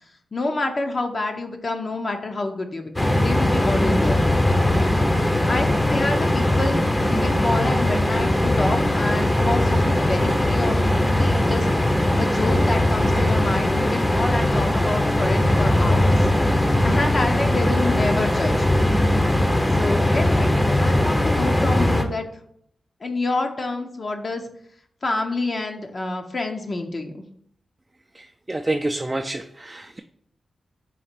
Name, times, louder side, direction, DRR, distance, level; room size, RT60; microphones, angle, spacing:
voice 1, 0.3-4.5 4.8-11.7 12.2-16.2 16.6-18.8 19.8-22.2 23.0-24.4 25.0-27.2, left 2 dB, 50° left, 4 dB, 0.7 m, -28 dB
sound 1, 3.0-22.0, left 1 dB, 15° left, 0.6 m, -20 dB
voice 2, 28.1-30.0, right 2 dB, 25° right, 5 dB, 0.3 m, -28 dB
4.1 x 2.9 x 4.3 m, 0.68 s
cardioid pair, 50°, 0 cm